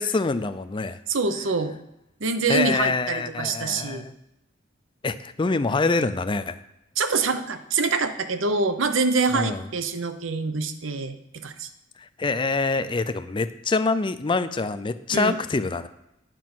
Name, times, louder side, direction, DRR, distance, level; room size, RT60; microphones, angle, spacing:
voice 1, 0.0-1.0 2.5-4.2 5.0-6.6 9.3-9.6 12.2-15.9, left 3 dB, 25° left, 12 dB, 0.4 m, -25 dB
voice 2, 1.1-1.8 2.2-4.1 7.0-11.2 11.4-11.7 15.1-15.4, right 4 dB, 75° right, 9 dB, 0.8 m, -25 dB
9.2 x 5.3 x 6.0 m, 0.87 s
head